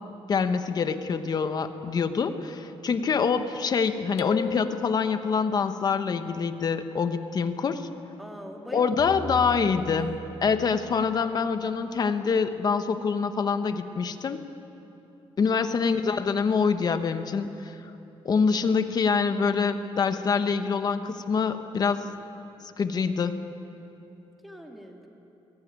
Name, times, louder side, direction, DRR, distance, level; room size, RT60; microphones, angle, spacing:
voice 1, 0.3-7.9 8.7-10.1 10.4-14.4 15.4-17.7 18.2-22.0 22.8-23.4, left 5 dB, 40° left, 9 dB, 1.1 m, -25 dB
sound 1, 4.2-5.7, left 11 dB, 85° left, 0.7 m, -36 dB
voice 2, 8.2-9.2 9.4-10.0 24.4-25.1, equal, ahead, 1 dB, 2.3 m, -42 dB
sound 2, 9.0-11.9, equal, 60° left, 2.8 m, -41 dB
22.5 x 17.5 x 9.5 m, 2.9 s
cardioid pair, 140°, 10 cm